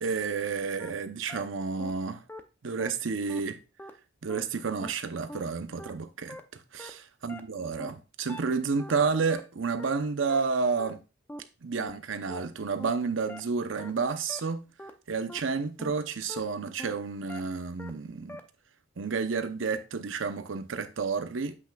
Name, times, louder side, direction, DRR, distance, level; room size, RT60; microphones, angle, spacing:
voice 1, 0.0-2.2 2.6-3.6 4.2-6.4 6.7-11.0 11.6-14.6 15.1-18.4 19.0-21.6, right 5 dB, 80° right, 0.7 m, -30 dB
sound 1, 0.8-0.9 1.3-1.4 1.8-1.9 2.3-2.4 2.8-2.9 3.3-3.4 3.8-3.9 4.3-4.4 4.8-4.9 5.3-5.4 5.8-5.9 6.3-6.4 6.8-6.9 7.3-7.4 7.8-7.9 8.3-8.4 8.8-8.9 9.3-9.4 9.8-9.9 10.3-10.4 10.8-10.9 11.3-11.4 11.8-11.9 12.3-12.4 12.8-12.9 13.3-13.4 13.8-13.9 14.3-14.4 14.8-14.9 15.3-15.4 15.8-15.9 16.3-16.4 16.8-16.9 17.3-17.4 17.8-17.9 18.3-18.4, left 1 dB, 10° left, 0.5 m, -42 dB
7.9 x 5.9 x 2.3 m
head